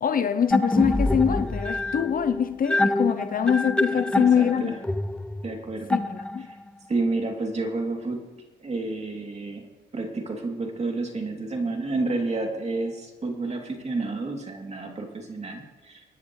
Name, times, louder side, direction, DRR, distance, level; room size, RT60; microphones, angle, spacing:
voice 1, 0.0-4.8 5.9-6.5, left 8 dB, 45° left, 0.7 m, -24 dB
sound 1, 0.5-6.7, left 1 dB, 5° left, 0.4 m, -26 dB
voice 2, 3.9-4.7 5.4-6.0 6.5-6.6 6.9-8.3 8.6-16.0, right 3 dB, 35° right, 3.0 m, -30 dB
29.5 x 10.0 x 3.2 m
cardioid pair, 90°, 20 cm